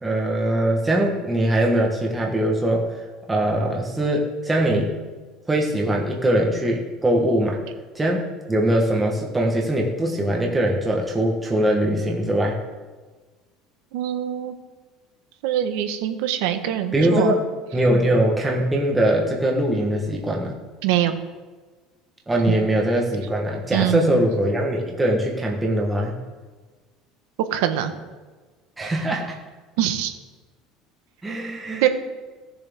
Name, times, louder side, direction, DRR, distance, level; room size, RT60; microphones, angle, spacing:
voice 1, 0.0-2.9 3.3-5.0 5.5-7.6 7.9-8.2 8.5-12.6 16.9-17.5 17.7-20.6 22.3-26.1 28.8-29.4 31.2-31.9, right 1 dB, 10° right, -1 dB, 1.1 m, -21 dB
voice 2, 13.9-14.5 15.4-17.3 20.8-21.2 22.5-22.6 23.7-24.2 27.5-27.9 29.8-30.1 31.8-31.9, right 11 dB, 75° right, 8 dB, 1.1 m, -23 dB
16.0 x 7.0 x 3.5 m, 1.3 s
cardioid pair, 175°, 0 cm